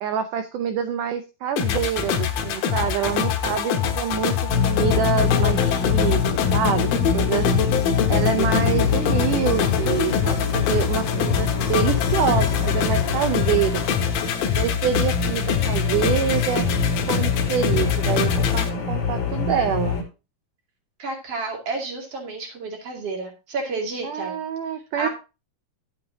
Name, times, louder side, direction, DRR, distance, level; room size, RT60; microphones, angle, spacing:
voice 1, 0.0-4.4 4.6-6.2 6.5-6.9 7.1-7.7 8.1-13.8 14.5-16.7 17.1-20.0 24.0-25.1, right 8 dB, 80° right, 9 dB, 1.8 m, -26 dB
sound 1, 1.6-18.7, left 8 dB, 75° left, 2.9 m, -25 dB
sound 2, 4.5-20.0, left 6 dB, 50° left, 3.5 m, -24 dB
voice 2, 21.0-24.3 25.0-25.1, right 3 dB, 40° right, 1 dB, 3.1 m, -30 dB
11.0 x 8.6 x 2.8 m, 0.30 s
omnidirectional pair, 4.6 m